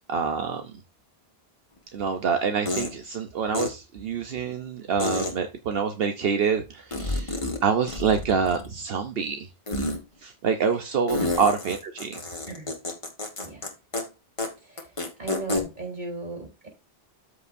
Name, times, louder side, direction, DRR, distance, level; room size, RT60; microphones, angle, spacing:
voice 1, 0.1-0.7 1.9-9.5 10.2-12.2, right 6 dB, 70° right, 1.0 m, -26 dB
sound 1, 1.8-1.9 2.7-2.9 3.5-3.7 5.0-5.3 6.9-7.6 7.9-8.8 9.7-10.0 11.1-13.7 13.9-14.0 14.4-14.5 14.8-15.6, left 2 dB, 30° left, 1.7 m, -29 dB
voice 2, 13.4-13.7 14.6-14.9 15.2-16.7, right 3 dB, 45° right, 3.9 m, -36 dB
13.5 x 5.0 x 2.6 m
omnidirectional pair, 1.0 m